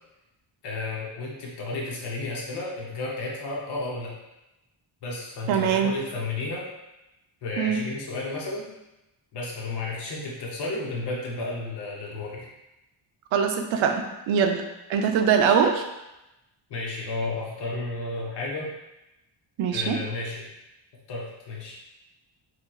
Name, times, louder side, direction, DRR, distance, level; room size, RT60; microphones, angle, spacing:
voice 1, 0.6-4.1 5.0-6.7 7.4-8.7 9.3-12.5 16.7-18.7 19.7-20.5 21.1-21.8, left 3 dB, 60° left, -4 dB, 0.8 m, -32 dB
voice 2, 5.5-5.9 7.6-7.8 13.3-14.6 14.9-15.8 19.6-20.0, right 7 dB, 85° right, 5 dB, 0.6 m, -22 dB
4.0 x 3.0 x 2.3 m, 0.95 s
wide cardioid pair, 160°, 45 cm